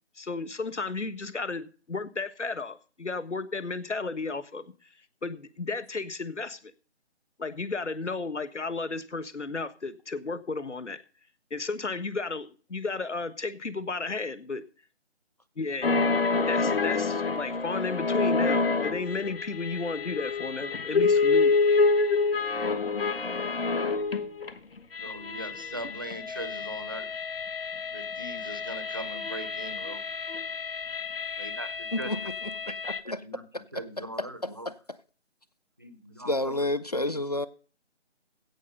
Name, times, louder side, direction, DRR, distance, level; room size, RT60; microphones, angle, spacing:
voice 1, 0.2-4.6 5.2-6.7 7.4-11.0 11.5-14.6 15.6-16.1 16.5-21.6, left 3 dB, 85° left, 1.5 m, -33 dB
sound 1, 15.8-24.5 24.8-33.0, left 4 dB, 55° left, 1.3 m, -28 dB
voice 2, 25.0-27.1 27.9-30.0 31.4-32.3 33.2-33.4 33.7-34.7 35.8-36.7, right 1 dB, 20° right, 0.6 m, -40 dB
voice 3, 32.7-33.2 34.4-34.5 36.2-37.5, left 1 dB, 35° left, 0.6 m, -29 dB
16.0 x 5.7 x 5.3 m
figure-of-eight pair, 160°, 35 cm